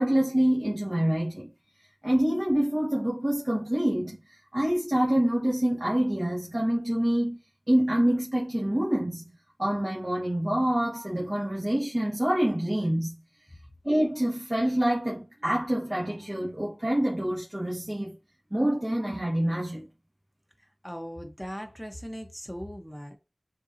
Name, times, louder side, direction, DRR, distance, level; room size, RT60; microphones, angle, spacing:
voice 1, 0.0-1.5 2.0-7.4 7.7-13.1 13.8-18.1 18.5-19.8, right 1 dB, 30° right, 1.5 m, -26 dB
voice 2, 20.8-23.2, equal, 10° left, 1.1 m, -39 dB
7.0 x 2.6 x 2.7 m
wide cardioid pair, 45°, 0 cm